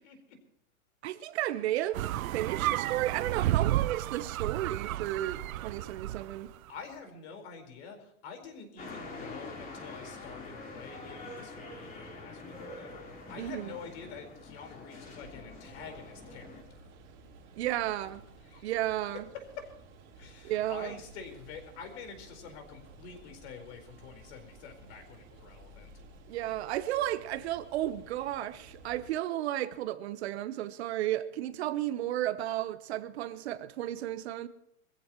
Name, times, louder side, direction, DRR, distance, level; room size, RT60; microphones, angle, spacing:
voice 1, 0.0-0.4 1.2-1.3 6.7-16.9 18.4-18.7 19.1-19.7 20.1-25.9, left 5 dB, 45° left, 4.5 m, -47 dB
voice 2, 1.0-6.5 13.4-13.7 17.6-18.2 18.6-19.2 20.4-21.0 26.3-34.5, right 13 dB, 50° right, 0.9 m, -33 dB
sound 1, 1.9-6.5, right 14 dB, 70° right, 0.6 m, -32 dB
sound 2, 8.8-16.6, left 2 dB, 20° left, 3.9 m, -45 dB
sound 3, 15.5-29.1, right 2 dB, 25° right, 3.3 m, -54 dB
23.0 x 15.0 x 3.1 m
supercardioid pair, 155°, 43 cm